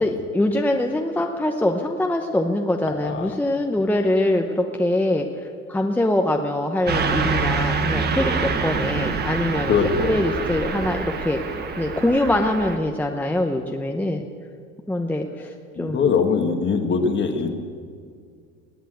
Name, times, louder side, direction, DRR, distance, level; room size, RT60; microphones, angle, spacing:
voice 1, 0.0-5.4 5.7-11.4 11.8-14.2 14.9-15.5 15.8-16.1, left 1 dB, 5° left, 3 dB, 0.9 m, -23 dB
voice 2, 2.9-3.3 9.7-10.2 15.8-17.5, left 5 dB, 35° left, 5 dB, 1.7 m, -22 dB
Car passing by / Truck, 6.9-12.8, right 4 dB, 30° right, 1.4 m, -25 dB
19.5 x 8.2 x 7.9 m, 2.2 s
supercardioid pair, 115°, 34 cm